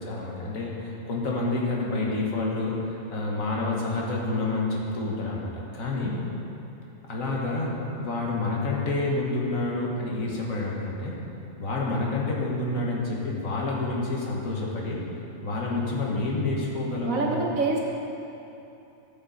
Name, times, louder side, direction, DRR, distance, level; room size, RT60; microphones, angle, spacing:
voice 1, 0.0-6.2 7.1-11.2 11.6-15.0 15.4-17.3, left 2 dB, 85° left, -3 dB, 1.9 m, -28 dB
voice 2, 17.0-17.8, right 3 dB, 85° right, -2 dB, 1.8 m, -25 dB
13.5 x 7.8 x 4.1 m, 2.9 s
omnidirectional pair, 1.4 m